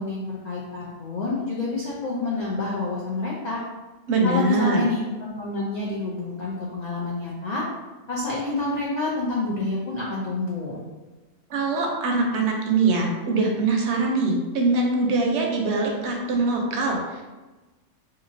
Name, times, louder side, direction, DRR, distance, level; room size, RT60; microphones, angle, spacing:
voice 1, 0.0-3.6 4.2-7.6 8.1-10.8, left 2 dB, 70° left, -5 dB, 0.4 m, -28 dB
voice 2, 4.1-4.8 11.5-17.2, right 3 dB, 70° right, 0 dB, 0.8 m, -23 dB
2.9 x 2.6 x 2.5 m, 1.2 s
omnidirectional pair, 1.3 m